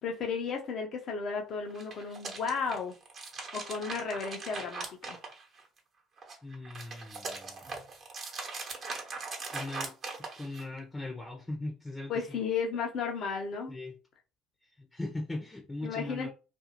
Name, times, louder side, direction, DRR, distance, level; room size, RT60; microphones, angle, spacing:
voice 1, 0.0-3.0 3.5-5.2 12.1-13.8 15.8-16.3, left 5 dB, 50° left, 0.7 m, -34 dB
sound 1, 1.7-5.8 6.2-10.8, right 4 dB, 45° right, 1.0 m, -40 dB
voice 2, 6.4-7.7 9.5-9.9 10.4-12.1 13.7-13.9 14.8-16.3, left 2 dB, 15° left, 0.7 m, -39 dB
2.5 x 2.3 x 2.9 m
hypercardioid pair, 65°, 0 cm